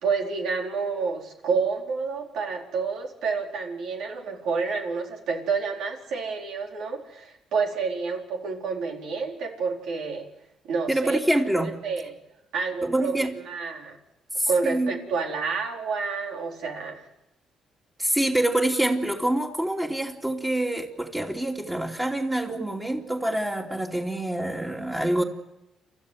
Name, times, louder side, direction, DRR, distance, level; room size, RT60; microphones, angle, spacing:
voice 1, 0.0-10.3 10.6-11.2 11.6-12.2 12.5-14.0 14.5-17.0, right 5 dB, 80° right, 1 dB, 4.2 m, -29 dB
voice 2, 10.9-11.7 12.8-13.3 14.4-14.9 18.0-25.2, right 1 dB, 15° right, -1 dB, 2.9 m, -26 dB
29.0 x 13.5 x 9.4 m, 0.90 s
cardioid pair, 90°, 0 cm